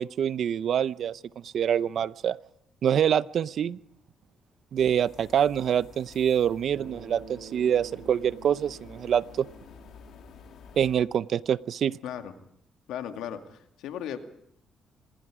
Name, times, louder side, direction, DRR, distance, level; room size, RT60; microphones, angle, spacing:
voice 1, 0.0-2.4 2.8-3.8 4.7-9.5 10.8-12.0, right 9 dB, 65° right, 18 dB, 0.7 m, -25 dB
sound 1, 4.8-11.0, left 6 dB, 70° left, 2.6 m, -50 dB
Bass guitar, 6.7-11.1, right 6 dB, 85° right, 3.6 m, -49 dB
voice 2, 12.0-12.3 12.9-14.2, left 9 dB, 85° left, 7 dB, 2.2 m, -36 dB
26.5 x 20.5 x 5.0 m, 0.74 s
cardioid pair, 90°, 0 cm